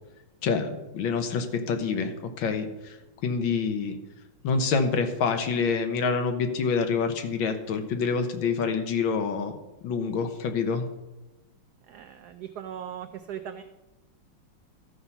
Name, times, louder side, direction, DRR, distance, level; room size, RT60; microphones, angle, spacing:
voice 1, 0.4-3.0 3.2-4.0 4.4-9.6 9.8-10.9, left 5 dB, 70° left, 7 dB, 1.7 m, -27 dB
voice 2, 11.9-13.6, right 9 dB, 85° right, 9 dB, 0.8 m, -39 dB
13.0 x 5.5 x 5.8 m, 1.0 s
omnidirectional pair, 2.3 m